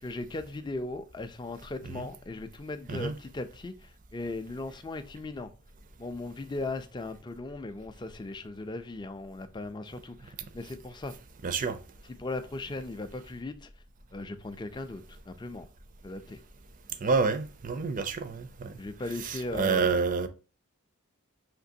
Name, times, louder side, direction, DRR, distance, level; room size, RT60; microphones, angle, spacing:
voice 1, 0.0-5.5 6.0-11.1 12.1-13.7 14.1-15.7 16.0-16.4 18.8-19.9, left 2 dB, 20° left, 0.4 m, -38 dB
voice 2, 11.4-11.8 17.0-18.7 19.2-20.3, right 4 dB, 40° right, 0.5 m, -28 dB
5.8 x 2.9 x 2.6 m
head